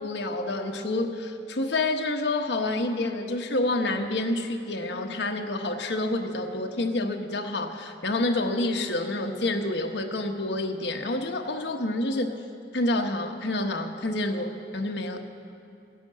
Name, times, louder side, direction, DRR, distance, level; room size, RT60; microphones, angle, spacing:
voice 1, 0.0-12.4 12.7-15.2, left 2 dB, 80° left, 3 dB, 1.1 m, -28 dB
17.5 x 10.5 x 7.4 m, 2.4 s
head